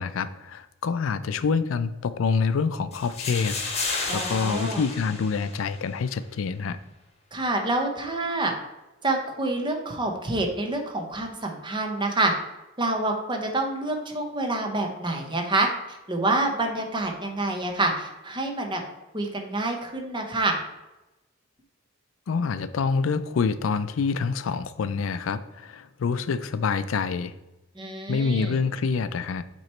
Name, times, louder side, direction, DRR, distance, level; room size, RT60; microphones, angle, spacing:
voice 1, 0.0-6.8 22.3-27.3 28.1-29.4, left 5 dB, 85° left, 12 dB, 0.4 m, -27 dB
sound 1, 2.9-5.9, left 3 dB, 35° left, 1.2 m, -32 dB
voice 2, 4.1-4.8 7.3-8.5 9.0-12.3 12.8-18.8 19.1-20.6 27.7-28.6, right 2 dB, 25° right, 3 dB, 0.9 m, -27 dB
7.9 x 3.1 x 4.3 m, 0.99 s
head